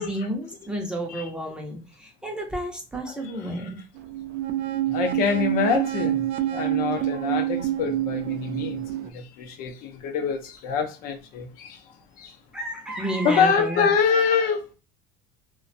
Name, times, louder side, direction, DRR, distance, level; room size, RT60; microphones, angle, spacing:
voice 1, 0.0-3.8 12.5-14.0, right 1 dB, 5° right, 0.5 m, -31 dB
voice 2, 3.0-3.7 4.9-6.2 6.5-11.8 12.2-12.4 13.2-14.7, left 6 dB, 65° left, 0.5 m, -25 dB
sound 1, 4.0-9.1, right 13 dB, 70° right, 0.4 m, -27 dB
2.4 x 2.2 x 2.5 m
cardioid pair, 125°, 16 cm